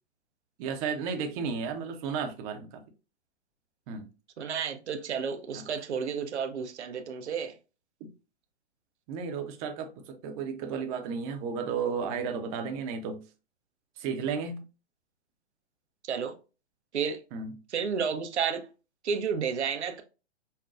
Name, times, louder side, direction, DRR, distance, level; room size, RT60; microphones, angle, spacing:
voice 1, 0.6-2.8 3.9-4.1 5.5-5.7 9.1-13.2 14.0-14.6 17.3-17.5, right 6 dB, 30° right, 0.7 m, -33 dB
voice 2, 4.4-7.5 16.1-16.3 16.9-17.2 17.7-18.6 19.0-20.0, right 6 dB, 70° right, 0.8 m, -31 dB
5.5 x 2.2 x 2.4 m
figure-of-eight pair, 115°, 35 cm